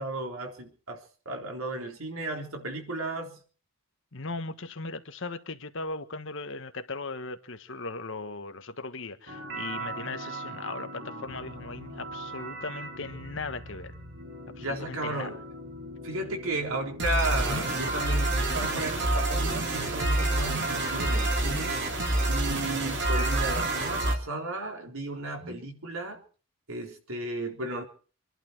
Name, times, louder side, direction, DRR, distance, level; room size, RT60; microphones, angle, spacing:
voice 1, 0.0-3.4 14.6-15.4 16.0-21.8 22.3-26.2 26.7-27.8, right 2 dB, 75° right, 3.8 m, -34 dB
voice 2, 4.1-13.9 14.6-15.4, left 3 dB, 60° left, 1.4 m, -38 dB
sound 1, 9.3-24.1, right 1 dB, 55° right, 3.1 m, -30 dB
26.5 x 11.5 x 4.7 m
head